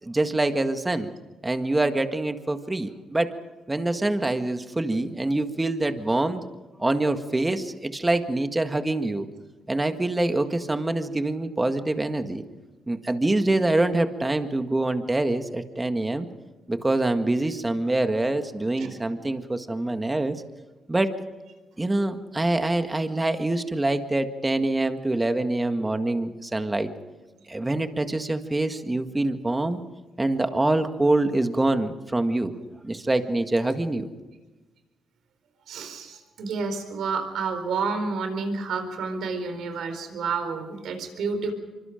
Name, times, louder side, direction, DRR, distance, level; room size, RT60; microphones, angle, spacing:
voice 1, 0.0-1.1 1.4-3.3 3.7-6.4 6.8-9.3 9.7-12.4 12.9-16.3 16.7-20.4 20.9-21.1 21.8-26.9 27.5-29.8 30.2-32.5 32.8-34.1, right 2 dB, 15° right, 7 dB, 1.8 m, -25 dB
voice 2, 35.7-41.5, right 4 dB, 75° right, 7 dB, 4.4 m, -30 dB
25.5 x 24.5 x 5.2 m, 1.2 s
cardioid pair, 90°, 0 cm